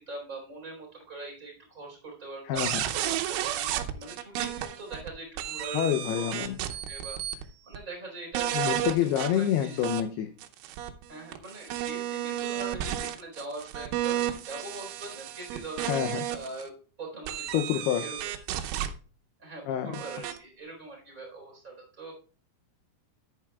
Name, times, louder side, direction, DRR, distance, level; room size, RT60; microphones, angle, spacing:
voice 1, 0.0-6.4 6.9-9.8 11.1-15.9 16.3-16.7 17.0-18.3 19.4-22.1, right 2 dB, 20° right, 0 dB, 4.2 m, -42 dB
voice 2, 2.5-2.8 5.7-6.6 8.5-10.3 15.9-16.3 17.5-18.1 19.7-19.9, left 10 dB, 85° left, 8 dB, 2.3 m, -27 dB
sound 1, 2.6-5.1 5.4-7.4 7.7-7.8 8.3-10.0 10.4-16.6 17.3-18.9 19.9-20.4, right 11 dB, 85° right, 3.3 m, -32 dB
13.5 x 10.5 x 2.3 m, 0.39 s
omnidirectional pair, 5.4 m